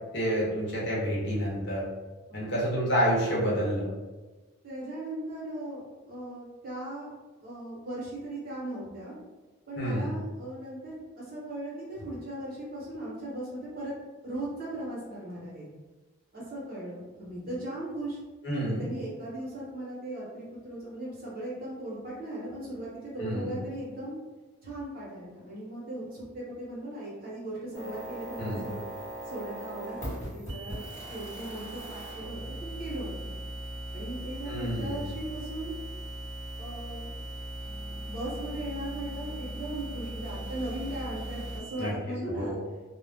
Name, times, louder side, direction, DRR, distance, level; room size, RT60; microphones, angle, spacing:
voice 1, 0.1-1.9 2.3-3.9 9.8-10.1 18.4-18.9 23.2-23.5 28.4-28.7 34.5-35.0 41.8-41.9 42.3-42.6, equal, 55° left, -5 dB, 0.8 m, -29 dB
voice 2, 2.3-2.7 4.6-7.1 7.4-9.1 9.7-13.9 14.2-15.6 16.3-18.2 18.7-24.1 24.6-29.0 29.2-30.8 31.1-33.4 33.9-35.8 36.6-37.1 37.9-42.6, right 1 dB, 45° right, -6 dB, 1.0 m, -38 dB
sound 1, 27.7-41.6, equal, 15° left, 1.1 m, -39 dB
sound 2, 30.5-41.9, right 4 dB, 85° right, 0.4 m, -46 dB
2.4 x 2.0 x 3.3 m, 1.2 s
head